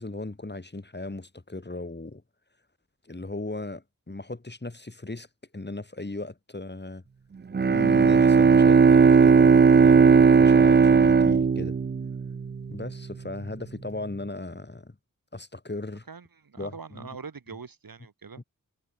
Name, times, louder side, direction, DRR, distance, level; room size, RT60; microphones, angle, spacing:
voice 1, 0.0-2.2 3.0-5.3 5.5-7.0 7.6-11.8 12.7-15.0 15.3-16.0 16.6-17.1, left 2 dB, 30° left, 6.8 m, -37 dB
Bowed string instrument, 7.5-12.7, right 5 dB, 30° right, 0.5 m, -17 dB
voice 2, 16.1-18.4, right 5 dB, 75° right, 4.0 m, -43 dB
wide cardioid pair, 85°, 34 cm